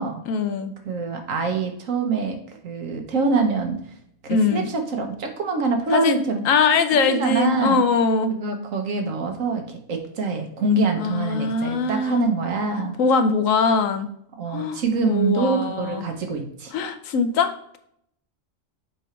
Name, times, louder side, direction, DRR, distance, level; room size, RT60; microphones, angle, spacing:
voice 1, 0.3-0.7 4.3-4.7 5.9-8.3 11.0-12.3 13.0-14.1 14.5-16.1 16.7-17.8, left 4 dB, 90° left, 9 dB, 1.1 m, -22 dB
voice 2, 0.8-3.8 4.2-6.4 6.9-7.8 8.3-13.0 14.4-16.7, right 4 dB, 85° right, 4 dB, 1.4 m, -25 dB
6.0 x 4.9 x 3.2 m, 0.71 s
omnidirectional pair, 1.3 m